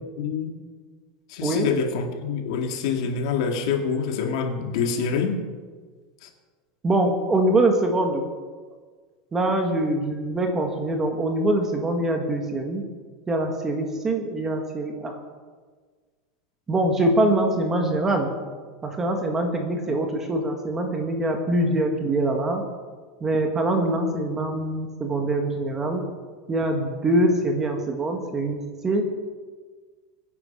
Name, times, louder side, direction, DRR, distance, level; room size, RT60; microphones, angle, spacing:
voice 1, 0.2-0.5 1.3-5.4 6.2-6.3, left 6 dB, 60° left, 3 dB, 2.4 m, -26 dB
voice 2, 6.8-8.2 9.3-12.8 13.3-15.2 16.7-18.3 18.8-22.6 23.2-26.0 26.5-29.0, right 1 dB, 15° right, 3 dB, 1.4 m, -24 dB
23.5 x 9.8 x 5.7 m, 1.5 s
supercardioid pair, 180°, 3 cm